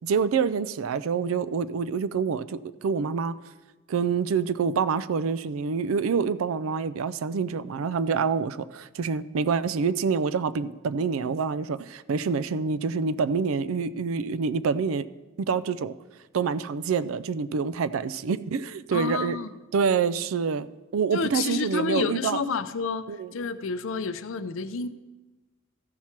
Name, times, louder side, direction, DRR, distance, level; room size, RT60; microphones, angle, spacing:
voice 1, 0.0-3.4 3.9-15.1 15.4-16.0 16.3-19.4 19.7-20.7 20.9-22.4 23.1-23.3, right 5 dB, 85° right, 15 dB, 0.4 m, -26 dB
voice 2, 18.9-19.5 21.1-23.1 23.3-24.9, left 5 dB, 80° left, 12 dB, 0.5 m, -29 dB
14.0 x 5.9 x 4.4 m, 1.2 s
head